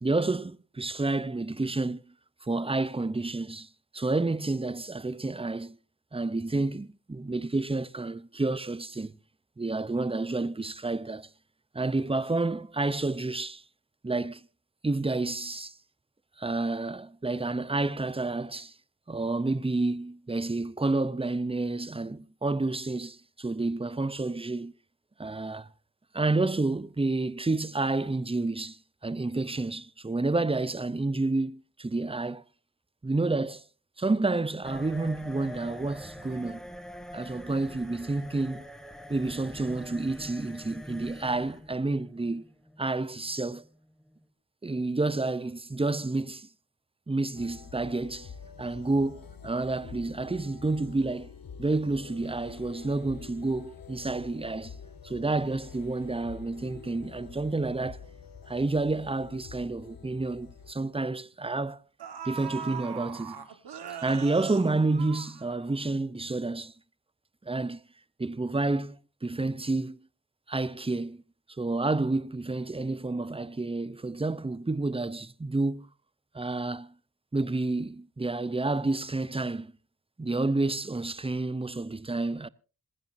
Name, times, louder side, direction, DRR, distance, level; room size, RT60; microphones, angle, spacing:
voice 1, 0.0-2.0 2.4-5.8 6.1-9.2 9.6-11.3 11.7-13.6 14.0-14.5 14.8-15.7 16.4-18.7 19.1-24.7 25.2-25.7 26.1-32.4 33.0-33.6 34.0-36.6 37.1-38.7 39.1-42.4 42.8-43.6 44.6-46.5 47.1-48.3 48.6-51.3 51.6-54.7 55.0-58.0 58.5-61.8 62.2-63.4 64.0-66.7 67.5-67.8 68.2-70.0 70.5-71.2 71.6-75.9 76.3-76.9 77.3-79.7 80.2-82.5, right 2 dB, 15° right, 0.7 m, -29 dB
sound 1, 34.6-44.2, left 1 dB, ahead, 2.2 m, -45 dB
sound 2, 47.3-60.7, left 6 dB, 60° left, 1.2 m, -47 dB
sound 3, 59.8-59.9 60.3-60.5 61.5-61.6 62.0-65.9 66.3-66.4, right 7 dB, 90° right, 1.5 m, -40 dB
26.5 x 10.0 x 2.7 m
cardioid pair, 40°, 38 cm